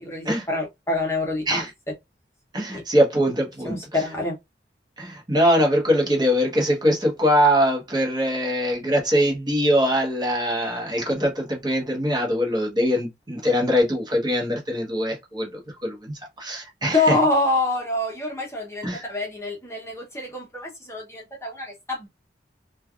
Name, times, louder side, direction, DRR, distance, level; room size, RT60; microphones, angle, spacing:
voice 1, 0.0-1.6 2.7-2.8 3.6-4.4 16.9-22.1, left 2 dB, 15° left, 0.8 m, -26 dB
voice 2, 2.5-3.8 5.0-17.2 18.8-19.0, equal, 25° right, 1.0 m, -22 dB
3.2 x 2.3 x 2.3 m
head